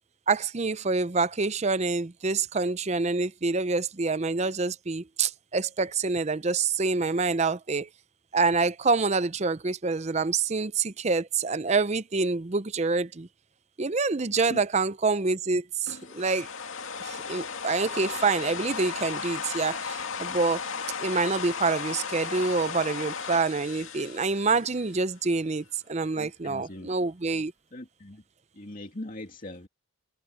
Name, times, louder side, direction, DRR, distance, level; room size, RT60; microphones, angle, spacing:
voice 1, 0.3-7.9 8.3-13.3 13.8-16.5 17.0-20.6 21.0-27.5, right 4 dB, 35° right, 0.6 m, -27 dB
sound 1, 15.9-25.1, left 5 dB, 75° left, 2.3 m, -35 dB
voice 2, 26.2-26.9 27.7-28.2 28.5-29.7, left 1 dB, 40° left, 2.4 m, -41 dB
head